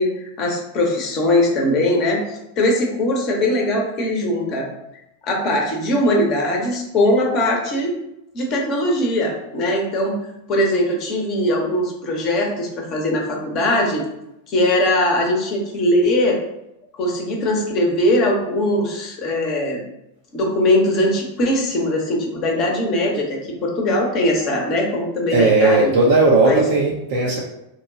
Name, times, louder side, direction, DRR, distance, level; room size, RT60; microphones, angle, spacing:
voice 1, 0.0-4.7 5.2-7.9 8.3-10.2 10.5-14.0 14.5-16.4 16.9-19.8 20.3-26.0 26.4-26.7, left 1 dB, 35° left, 0 dB, 0.8 m, -20 dB
voice 2, 25.3-27.4, right 2 dB, 50° right, -4 dB, 0.6 m, -16 dB
2.9 x 2.2 x 3.9 m, 0.87 s
figure-of-eight pair, 90°, 0 cm